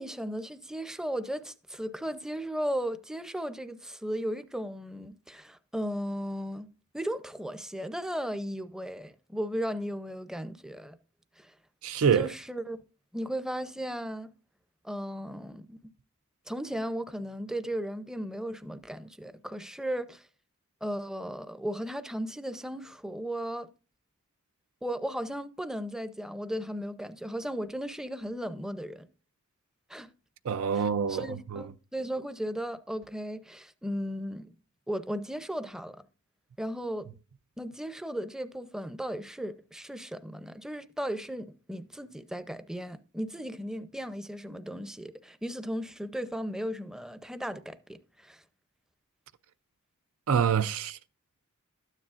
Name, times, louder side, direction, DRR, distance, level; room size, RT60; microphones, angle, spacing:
voice 1, 0.0-6.7 6.9-11.0 11.4-11.5 12.1-12.8 13.1-14.3 14.8-15.8 16.5-20.3 20.8-23.7 24.8-29.1 29.9-30.1 31.1-34.5 34.9-36.0 36.6-37.1 37.6-48.4, equal, 5° right, 0.5 m, -36 dB
voice 2, 11.8-12.3 30.4-31.7 50.3-51.0, right 7 dB, 75° right, 0.4 m, -26 dB
12.5 x 9.7 x 2.5 m
head